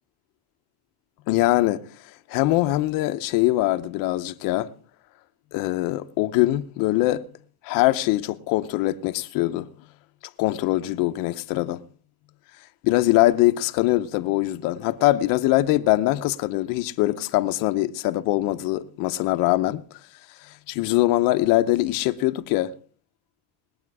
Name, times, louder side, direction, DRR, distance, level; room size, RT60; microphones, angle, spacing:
voice 1, 1.3-1.8 2.3-4.7 5.5-7.2 7.6-9.7 10.4-11.8 12.8-19.8 20.7-22.7, left 17 dB, 50° left, 0.8 m, -22 dB
21.0 x 8.6 x 4.7 m
cardioid pair, 180°, 44 cm